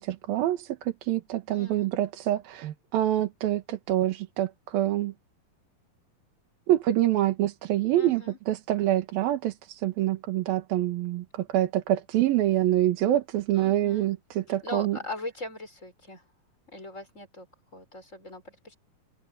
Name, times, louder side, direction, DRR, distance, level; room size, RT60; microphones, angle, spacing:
voice 1, 0.0-5.1 6.7-8.2 8.5-15.0, right 13 dB, 80° right, 3.3 m, -26 dB
voice 2, 1.5-1.9 7.9-8.4 13.6-14.1 14.5-16.2 16.7-17.5 17.7-18.7, left 2 dB, 20° left, 5.3 m, -40 dB
omnidirectional pair, 4.2 m